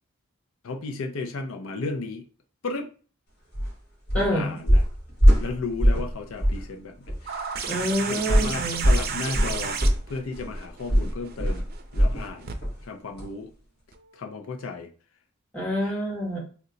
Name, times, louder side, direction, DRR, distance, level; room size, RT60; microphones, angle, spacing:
voice 1, 0.6-2.2 2.6-2.9 4.1-4.8 5.4-6.9 7.2-7.4 8.1-9.8 10.1-11.7 11.9-12.5 12.8-13.5 14.1-14.9 15.8-16.0, left 3 dB, 90° left, 4 dB, 0.5 m, -34 dB
sound 1, 3.5-3.7 4.1-4.3 4.7-6.1 6.4-6.7 7.1-7.2 8.3-12.3 12.6-12.8 13.2-13.3, equal, 55° left, 1.2 m, -21 dB
voice 2, 4.1-4.6 7.6-8.8 15.5-16.4, equal, 5° left, -6 dB, 1.5 m, -27 dB
sound 2, 7.3-12.6 13.9-14.0, right 6 dB, 50° right, 0.4 m, -33 dB
2.8 x 2.2 x 3.8 m, 0.39 s
head